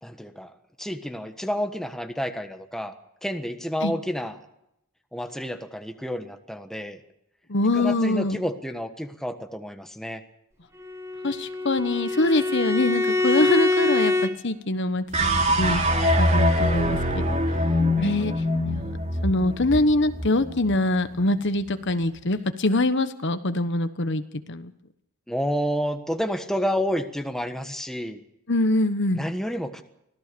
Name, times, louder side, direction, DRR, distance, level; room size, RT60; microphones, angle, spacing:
voice 1, 0.0-0.5 0.8-2.9 3.2-4.4 5.1-7.0 7.7-10.2 17.9-18.1 25.3-28.2 29.1-29.8, equal, ahead, 6 dB, 1.3 m, -30 dB
voice 2, 7.5-8.4 11.2-17.4 18.0-18.3 18.7-19.0 19.2-24.2 24.5-24.7 28.5-29.2, left 2 dB, 60° left, 10 dB, 1.2 m, -24 dB
Bowed string instrument, 10.8-14.3, left 2 dB, 15° right, 1.6 m, -24 dB
sound 1, 15.1-21.5, equal, 35° right, 2.9 m, -24 dB
25.0 x 17.0 x 6.9 m, 0.82 s
head